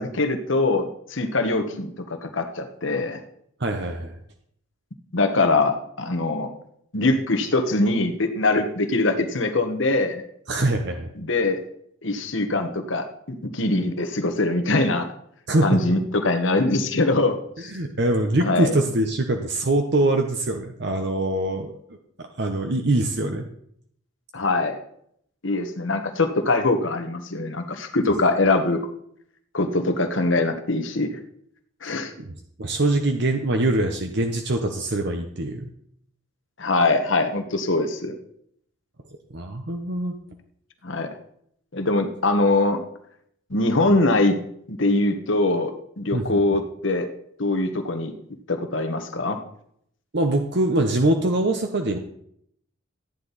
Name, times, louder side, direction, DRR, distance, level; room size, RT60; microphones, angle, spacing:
voice 1, 0.0-3.2 5.1-6.5 6.9-10.2 11.2-11.6 12.0-15.1 15.6-17.7 18.4-18.7 24.3-24.8 25.4-28.8 29.5-31.2 31.8-32.1 36.6-38.1 40.8-41.1 41.7-42.8 43.5-44.4 44.7-47.1 47.4-48.1 48.5-49.4, left 2 dB, 65° left, 6 dB, 1.3 m, -23 dB
voice 2, 3.6-4.2 10.5-11.1 15.5-15.8 17.7-23.5 32.2-35.7 39.3-40.1 46.1-46.4 50.1-52.0, right 1 dB, 55° right, 5 dB, 0.9 m, -23 dB
13.5 x 9.8 x 4.1 m, 0.70 s
head